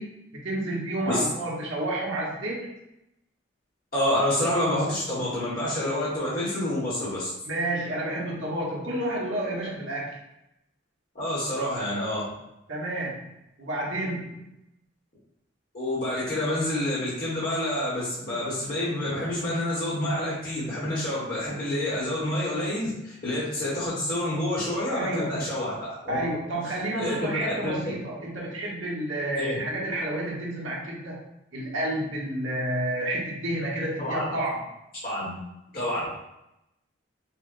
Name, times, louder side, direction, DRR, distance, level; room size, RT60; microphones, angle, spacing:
voice 1, 0.0-2.6 7.4-10.2 12.7-13.3 13.6-14.4 24.9-25.5 26.1-31.2 31.5-34.6, right 1 dB, 75° right, -4 dB, 1.0 m, -30 dB
voice 2, 3.9-7.3 11.1-12.3 15.7-25.8 26.0-26.2 27.0-27.8 29.4-29.6 34.0-34.3 35.0-35.3 35.7-36.0, left 1 dB, 45° left, -9 dB, 1.2 m, -28 dB
5.6 x 2.1 x 2.5 m, 0.87 s
head